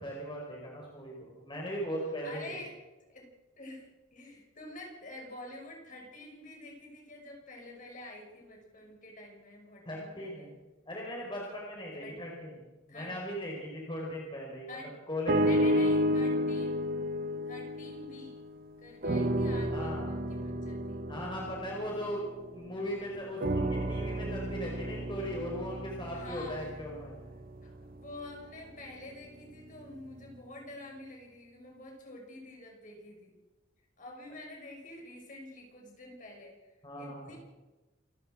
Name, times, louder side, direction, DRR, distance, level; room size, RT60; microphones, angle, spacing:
voice 1, 0.0-2.6 9.8-10.5 10.9-12.5 12.9-14.8 15.1-15.7 19.7-20.2 21.1-22.2 22.5-27.2 36.8-37.4, equal, 25° left, -2 dB, 5.0 m, -38 dB
voice 2, 2.2-2.7 3.1-3.3 3.6-10.5 11.9-12.2 12.9-13.1 14.7-14.9 15.4-16.8 17.4-18.4 18.8-21.1 26.1-26.7 27.6-33.4 34.0-36.7 37.0-37.4, left 2 dB, 40° left, 1 dB, 6.1 m, -48 dB
sound 1, 15.3-18.6 19.0-22.8 23.4-27.6 28.3-28.4, equal, 45° right, 1.6 m, -31 dB
28.0 x 12.5 x 7.6 m, 1.1 s
head